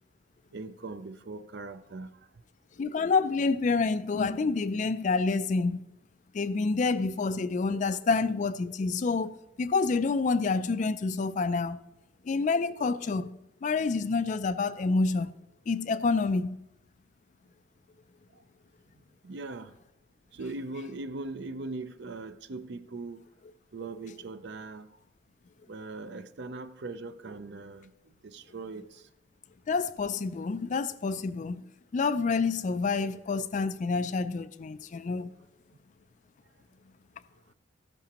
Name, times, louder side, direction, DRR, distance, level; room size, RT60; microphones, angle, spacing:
voice 1, 0.5-2.3 18.3-18.4 19.2-19.8 20.3-23.3 23.7-25.0 25.7-29.1, right 3 dB, 60° right, 0.5 m, -40 dB
voice 2, 2.8-5.8 6.3-11.8 12.2-13.3 13.6-15.3 15.7-16.6 29.7-31.6 31.9-35.3, left 4 dB, 40° left, 0.3 m, -28 dB
13.0 x 10.5 x 2.9 m
head